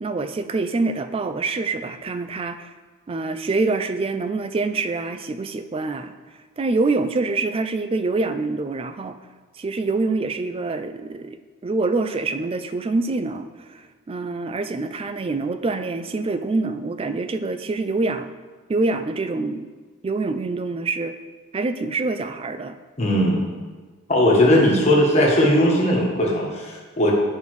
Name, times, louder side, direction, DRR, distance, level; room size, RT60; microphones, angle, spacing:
voice 1, 0.0-2.7 3.1-6.1 6.6-9.2 9.6-11.4 11.6-18.3 18.7-19.7 20.0-21.1 21.5-22.8, right 3 dB, 25° right, 10 dB, 0.3 m, -25 dB
voice 2, 23.0-23.4 24.1-27.1, left 1 dB, 30° left, -3 dB, 1.3 m, -18 dB
9.7 x 5.3 x 3.2 m, 1.4 s
head